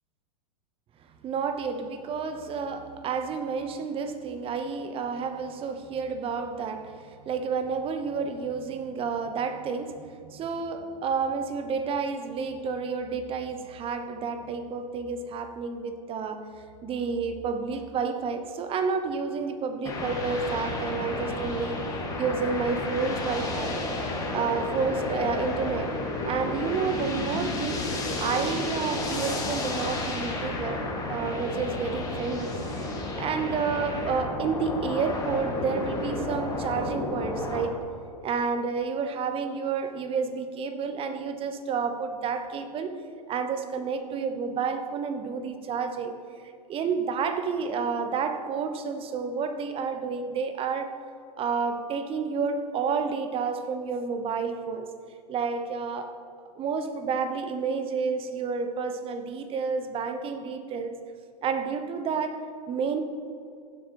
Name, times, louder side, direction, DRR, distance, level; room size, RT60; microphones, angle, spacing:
voice 1, 1.2-16.5 16.8-21.8 22.2-23.8 24.3-25.9 26.2-27.8 28.2-32.9 33.2-37.8 38.2-43.0 43.3-46.2 46.7-51.0 51.4-54.9 55.3-56.2 56.6-61.0 61.4-63.0, right 5 dB, 25° right, 8 dB, 0.9 m, -30 dB
sound 1, 19.9-37.7, left 2 dB, 15° left, 1.8 m, -31 dB
15.5 x 7.6 x 3.0 m, 2.3 s
hypercardioid pair, 105°, 21 cm